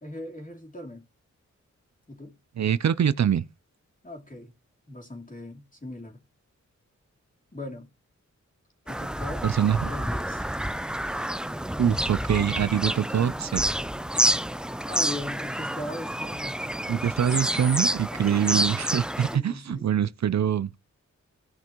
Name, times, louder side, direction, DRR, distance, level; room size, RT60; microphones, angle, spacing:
voice 1, 0.0-1.0 2.1-2.3 4.0-4.5 4.9-6.2 7.5-7.9 8.8-10.5 14.9-16.6 18.1-18.5 19.1-19.9, left 1 dB, 25° left, 3.0 m, -39 dB
voice 2, 2.6-3.5 9.4-9.9 11.8-13.6 16.9-20.7, right 9 dB, 65° right, 0.5 m, -24 dB
Bird vocalization bird call bird song, 8.9-19.4, right 1 dB, 5° right, 0.4 m, -29 dB
16.5 x 5.9 x 3.0 m
wide cardioid pair, 80°, 30 cm